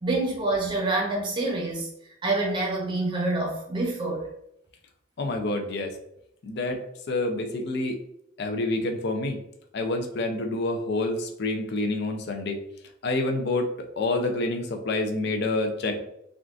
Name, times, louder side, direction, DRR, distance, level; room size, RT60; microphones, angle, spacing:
voice 1, 0.0-1.9 2.2-4.3, right 2 dB, 25° right, -2 dB, 0.7 m, -27 dB
voice 2, 5.2-6.0 6.4-8.0 8.4-9.4 9.7-12.6 13.0-16.0, left 2 dB, 55° left, 4 dB, 0.5 m, -28 dB
3.6 x 2.3 x 2.4 m, 0.77 s
head